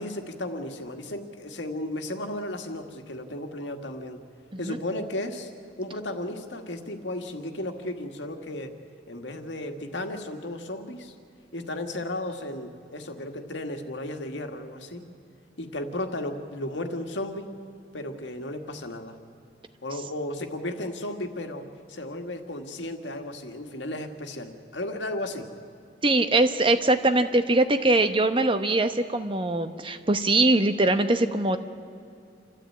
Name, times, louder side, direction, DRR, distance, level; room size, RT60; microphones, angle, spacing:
voice 1, 0.0-4.2 4.6-5.5 5.8-8.8 9.1-11.1 11.5-15.0 15.6-17.5 17.9-19.2 19.8-25.5, left 1 dB, 90° left, 5 dB, 1.8 m, -34 dB
voice 2, 26.0-31.6, right 2 dB, 30° right, 9 dB, 1.0 m, -22 dB
28.0 x 13.5 x 8.6 m, 2.5 s
head